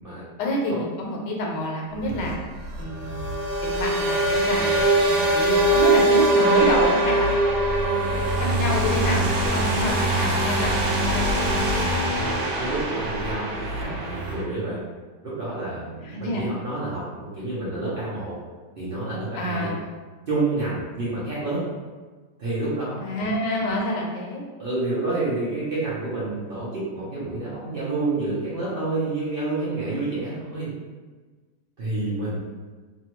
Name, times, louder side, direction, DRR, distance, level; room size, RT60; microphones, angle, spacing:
voice 1, 0.4-2.4 2.8-7.5 7.8-11.9 16.0-16.6 19.3-19.9 23.0-24.4, left 1 dB, 80° left, -2 dB, 1.3 m, -28 dB
sound 1, 2.0-14.4, right 2 dB, 85° right, 1.3 m, -22 dB
voice 2, 12.3-14.8 15.2-18.3 18.8-19.7 20.3-21.6 22.4-23.0 24.6-30.7 31.8-32.4, right 2 dB, 65° right, -9 dB, 0.5 m, -29 dB
2.9 x 2.3 x 2.9 m, 1.3 s
omnidirectional pair, 1.9 m